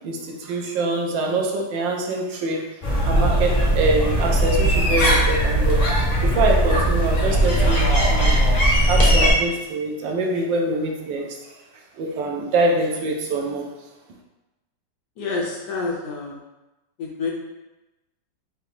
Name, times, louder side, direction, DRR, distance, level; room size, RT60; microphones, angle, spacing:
voice 1, 0.0-2.6 3.0-5.8 6.2-8.4 8.9-11.2 12.0-13.7, right 2 dB, 80° right, 1 dB, 1.4 m, -24 dB
sound 1, 2.8-9.3, right 1 dB, 40° left, 0.6 m, -19 dB
voice 2, 15.2-16.4 17.0-17.3, left 4 dB, 70° left, -2 dB, 1.1 m, -28 dB
4.9 x 2.7 x 3.2 m, 1.0 s
omnidirectional pair, 2.0 m